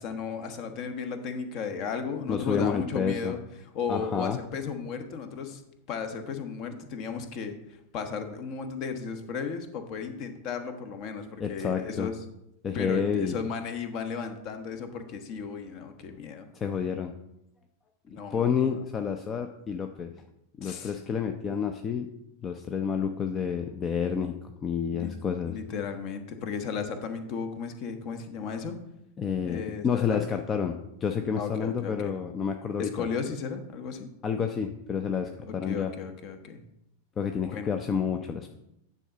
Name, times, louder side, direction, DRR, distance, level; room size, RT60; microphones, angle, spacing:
voice 1, 0.0-5.6 5.9-12.1 12.7-16.5 18.1-18.8 20.6-21.0 24.9-25.1 25.4-28.8 29.4-30.3 31.4-32.1 32.8-34.1 35.5-36.6 37.5-37.7, left 5 dB, 40° left, 8 dB, 1.1 m, -35 dB
voice 2, 2.3-3.3 3.9-4.4 11.4-12.1 12.6-13.4 16.5-17.1 18.1-20.1 20.6-22.1 22.4-24.4 24.6-25.5 29.2-33.1 34.2-35.9 37.2-38.5, left 7 dB, 25° left, 6 dB, 0.6 m, -29 dB
10.0 x 3.9 x 5.5 m, 0.83 s
figure-of-eight pair, 90°, 0 cm